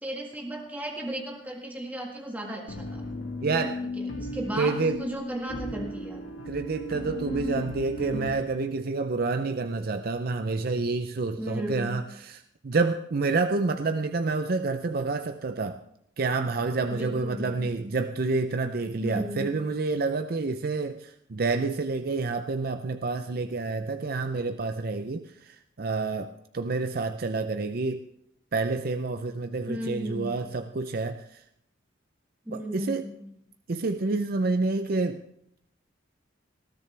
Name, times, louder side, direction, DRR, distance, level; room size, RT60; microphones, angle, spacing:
voice 1, 0.0-3.0 4.0-6.2 11.4-11.9 16.9-17.7 19.0-19.5 29.7-30.4 32.5-33.3, equal, 10° right, 0 dB, 1.8 m, -35 dB
sound 1, 2.7-8.3, left 1 dB, 90° left, 1.9 m, -35 dB
voice 2, 3.4-3.8 4.6-5.0 6.5-15.8 16.2-28.0 28.5-31.4 32.5-33.1 33.7-35.2, right 3 dB, 50° right, 8 dB, 0.5 m, -28 dB
20.0 x 14.0 x 3.4 m, 0.72 s
head